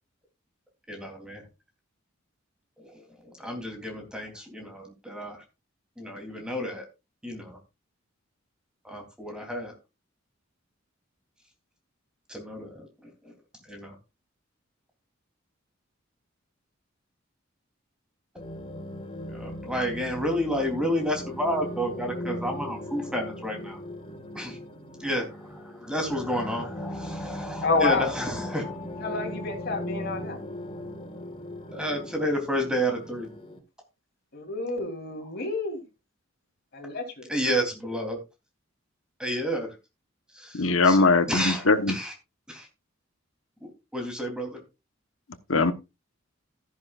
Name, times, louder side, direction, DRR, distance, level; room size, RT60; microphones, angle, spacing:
voice 1, 0.9-1.4 2.8-5.4 6.0-6.8 7.2-7.6 8.8-9.7 12.3-13.3 13.6-14.0 19.3-23.8 24.3-24.6 25.0-28.8 31.7-33.3 37.3-38.2 39.2-39.7 40.3-42.1 42.5-42.7 43.6-44.6, equal, 5° right, 3.3 m, -31 dB
sound 1, 18.4-33.6, left 1 dB, 30° left, 1.9 m, -38 dB
voice 2, 27.6-28.1 29.0-30.4 34.3-35.8 36.7-37.3, left 3 dB, 55° left, 3.6 m, -29 dB
voice 3, 40.5-41.9 45.5-45.7, left 3 dB, 80° left, 1.2 m, -21 dB
13.5 x 10.5 x 2.5 m
head